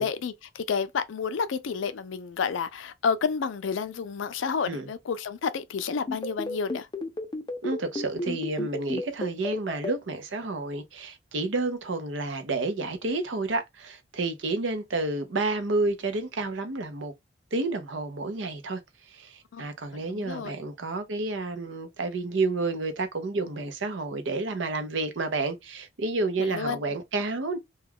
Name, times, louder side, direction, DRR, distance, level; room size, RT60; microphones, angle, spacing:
voice 1, 0.0-6.9 19.5-19.6 20.1-20.5 26.4-26.8, left 5 dB, 80° left, 0.4 m, -30 dB
sound 1, 6.1-9.9, left 2 dB, 25° left, 0.6 m, -31 dB
voice 2, 7.6-17.1 17.5-18.8 19.1-27.6, right 3 dB, 70° right, 0.6 m, -30 dB
2.2 x 2.2 x 3.4 m
head